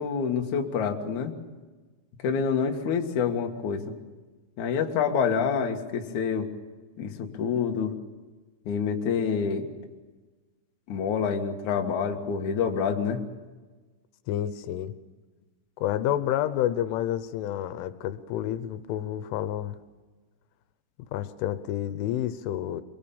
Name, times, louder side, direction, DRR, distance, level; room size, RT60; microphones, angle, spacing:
voice 1, 0.0-1.3 2.2-4.0 4.6-6.5 7.0-7.9 8.7-9.7 10.9-13.2, left 6 dB, 55° left, 2 dB, 2.5 m, -27 dB
voice 2, 14.3-14.9 15.8-19.8 21.1-22.8, left 11 dB, 85° left, 12 dB, 3.4 m, -29 dB
25.5 x 23.0 x 7.1 m, 1.3 s
omnidirectional pair, 5.5 m